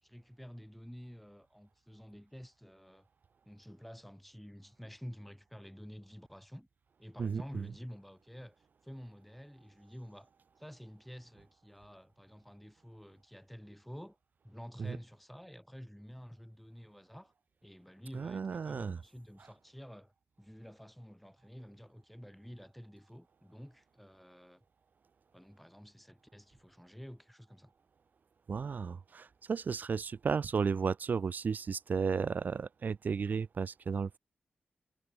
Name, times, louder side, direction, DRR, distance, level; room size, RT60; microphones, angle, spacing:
voice 1, 0.0-3.1 3.5-6.7 7.0-8.6 8.8-10.3 10.6-14.2 14.4-17.3 17.6-20.1 20.4-24.6 25.3-27.7, equal, 5° left, 5.6 m, -50 dB
voice 2, 7.2-7.7 14.8-15.0 18.1-19.0 28.5-34.2, right 5 dB, 60° right, 1.2 m, -34 dB
cardioid pair, 60°, 3 cm